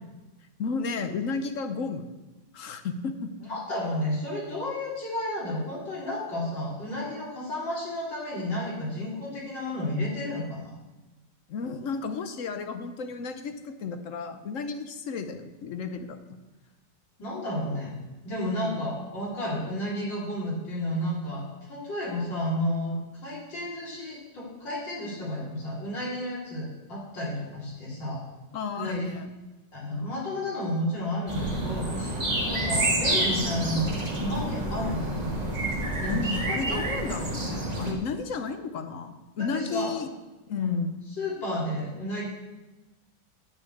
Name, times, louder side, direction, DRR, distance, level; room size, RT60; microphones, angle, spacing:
voice 1, 0.6-2.1 2.5-3.3 11.5-16.2 18.4-18.8 28.5-29.3 36.1-40.1 40.5-40.9, left 5 dB, 55° left, 8 dB, 1.0 m, -33 dB
voice 2, 3.5-10.7 17.2-17.9 18.2-28.2 28.7-29.1 29.7-35.3 36.0-36.8 39.4-39.9 40.5-40.8 41.2-42.2, left 1 dB, 85° left, -6 dB, 4.3 m, -32 dB
sound 1, 31.3-37.9, right 1 dB, 25° right, 1.9 m, -28 dB
9.6 x 6.2 x 8.4 m, 1.1 s
omnidirectional pair, 1.9 m